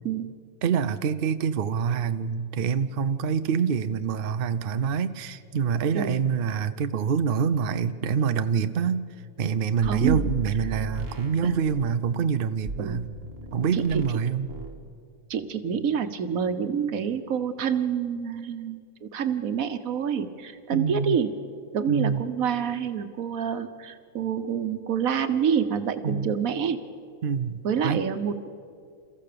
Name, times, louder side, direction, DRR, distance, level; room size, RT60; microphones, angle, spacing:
voice 1, 0.6-9.1 9.4-13.1 13.5-14.5 20.7-21.2 21.9-22.2 26.0-26.3 27.2-28.1, right 6 dB, 50° right, 11 dB, 0.8 m, -26 dB
sound 1, 9.8-12.0 12.7-14.2 14.5-14.8, right 2 dB, 65° right, 2.1 m, -36 dB
voice 2, 9.8-10.2 11.4-11.5 12.8-13.1 13.7-14.0 15.3-21.4 21.7-26.8 27.6-28.5, right 7 dB, 85° right, 10 dB, 1.5 m, -27 dB
28.5 x 14.5 x 6.8 m, 2.3 s
omnidirectional pair, 1.4 m